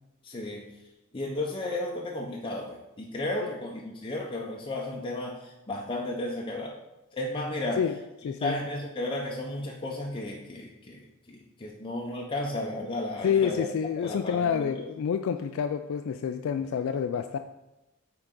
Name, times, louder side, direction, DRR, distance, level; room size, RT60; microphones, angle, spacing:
voice 1, 0.2-0.7 1.1-6.8 7.1-7.8 8.4-13.7 14.0-14.7, left 1 dB, 25° left, -2 dB, 0.6 m, -33 dB
voice 2, 8.2-8.6 13.2-17.4, left 7 dB, 65° left, 8 dB, 0.3 m, -28 dB
8.9 x 3.9 x 3.7 m, 0.96 s
head